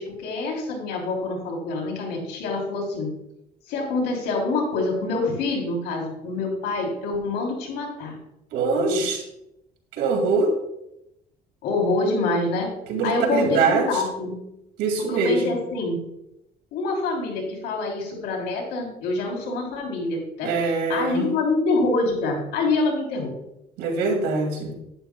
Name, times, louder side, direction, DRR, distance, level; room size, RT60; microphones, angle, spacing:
voice 1, 0.0-3.1 3.7-8.2 8.8-9.0 11.6-12.7 13.0-14.4 15.0-16.0 16.7-23.4, left 3 dB, 85° left, -1 dB, 3.3 m, -26 dB
voice 2, 8.5-9.2 10.0-10.5 12.9-14.0 14.8-15.6 20.4-21.3 23.8-24.7, right 4 dB, 90° right, 1 dB, 2.2 m, -23 dB
11.5 x 10.5 x 2.2 m, 0.85 s
cardioid pair, 110°, 17 cm